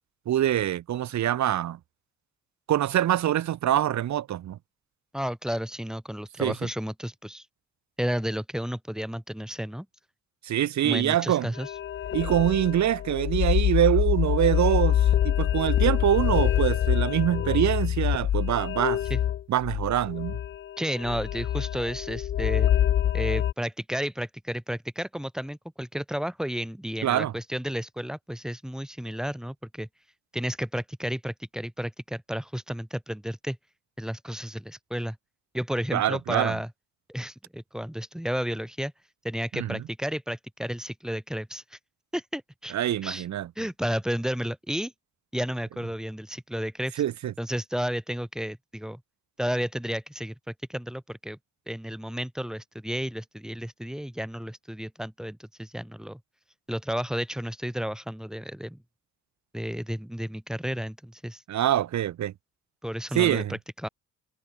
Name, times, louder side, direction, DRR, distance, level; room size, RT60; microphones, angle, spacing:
voice 1, 0.2-1.8 2.7-4.6 6.4-6.5 10.4-11.5 12.1-19.0 19.5-20.4 27.0-27.3 35.9-36.6 39.5-39.8 42.7-43.5 47.0-47.3 61.5-62.3 63.1-63.6, right 12 dB, 70° right, 1.8 m, -25 dB
voice 2, 5.1-7.4 8.0-9.8 10.8-11.7 19.1-19.2 20.8-22.7 23.1-29.9 30.3-33.6 34.0-35.2 35.5-36.7 37.1-38.9 39.2-41.8 42.1-42.8 43.0-43.2 43.5-44.9 45.3-46.9 47.4-49.0 49.4-51.4 51.7-56.2 56.7-58.8 59.5-61.4 62.8-63.9, equal, ahead, 5.3 m, -32 dB
sound 1, 11.5-23.5, left 11 dB, 40° left, 0.4 m, -25 dB
cardioid pair, 90°, 30 cm